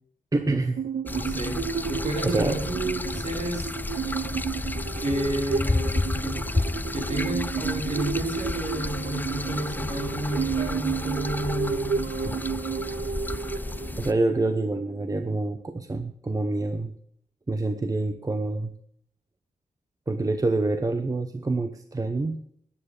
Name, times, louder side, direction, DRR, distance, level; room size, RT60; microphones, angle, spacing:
voice 1, 0.3-0.8 2.2-2.7 14.0-16.9 17.5-18.7 20.1-22.4, right 2 dB, 25° right, 8 dB, 0.9 m, -26 dB
sound 1, 0.8-15.2, right 6 dB, 90° right, 0.7 m, -32 dB
sound 2, 1.1-14.1, left 2 dB, 15° left, 0.4 m, -31 dB
voice 2, 1.1-3.7 4.9-6.4 6.9-12.0, right 1 dB, 55° right, 1 dB, 4.1 m, -31 dB
13.5 x 10.0 x 4.9 m, 0.67 s
wide cardioid pair, 130°, 14 cm